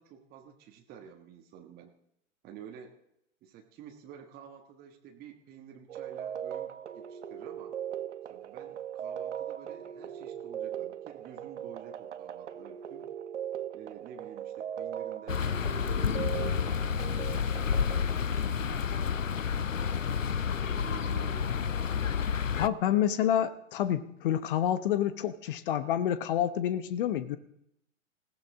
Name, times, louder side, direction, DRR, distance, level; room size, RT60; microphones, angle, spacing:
voice 1, 0.0-1.9 2.4-3.0 3.4-7.8 8.3-13.1 13.7-17.7 18.3-20.3 20.6-21.7, right 8 dB, 25° right, 3 dB, 1.4 m, -50 dB
sound 1, 5.9-18.5, right 10 dB, 65° right, 1.0 m, -39 dB
sound 2, 15.3-22.7, left 7 dB, 90° left, 0.6 m, -30 dB
voice 2, 22.6-27.4, left 10 dB, 45° left, 13 dB, 1.0 m, -28 dB
20.0 x 16.0 x 3.7 m, 0.76 s
figure-of-eight pair, 110°, 38 cm